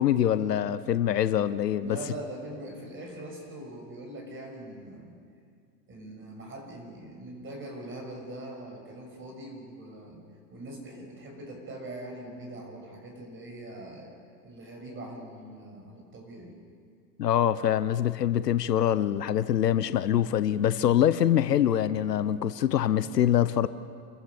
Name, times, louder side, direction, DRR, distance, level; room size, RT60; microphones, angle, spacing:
voice 1, 0.0-2.0 17.2-23.7, left 10 dB, 75° left, 14 dB, 0.9 m, -24 dB
voice 2, 1.8-5.2 5.9-10.2 10.5-14.1 14.4-16.5, right 1 dB, 25° right, 1 dB, 6.6 m, -42 dB
28.5 x 14.5 x 7.1 m, 2.3 s
hypercardioid pair, 100°, 48 cm